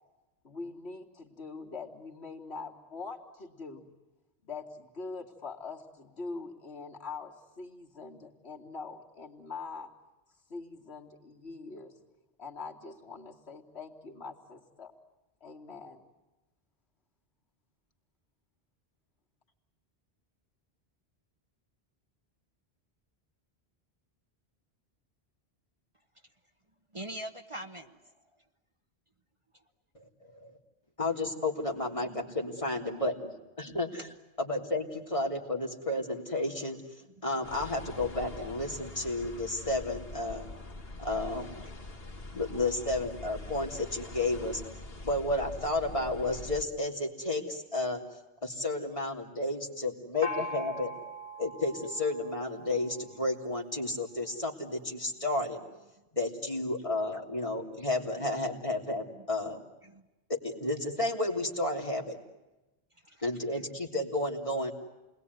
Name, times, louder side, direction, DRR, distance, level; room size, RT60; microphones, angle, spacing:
voice 1, 0.4-3.9 4.4-9.9 10.5-11.9 12.4-14.9 15.4-16.0, left 4 dB, 85° left, 1 dB, 2.8 m, -43 dB
voice 2, 26.9-28.0 32.0-32.3 32.9-33.1 33.6-33.8 42.9-43.0 59.8-60.0 63.1-63.2, right 1 dB, 30° right, 6 dB, 1.2 m, -43 dB
voice 3, 31.0-33.3 33.6-34.1 34.4-36.8 37.2-40.5 41.0-41.5 42.3-44.6 45.0-48.0 48.4-50.9 51.4-55.6 56.1-59.6 60.3-62.2 63.2-64.7, left 2 dB, 30° left, 0 dB, 3.3 m, -32 dB
sound 1, 37.4-46.6, left 2 dB, 65° left, 2.4 m, -44 dB
Gong, 50.2-53.7, left 1 dB, 50° right, 4.6 m, -41 dB
29.0 x 21.0 x 9.5 m, 1.1 s
omnidirectional pair, 1.1 m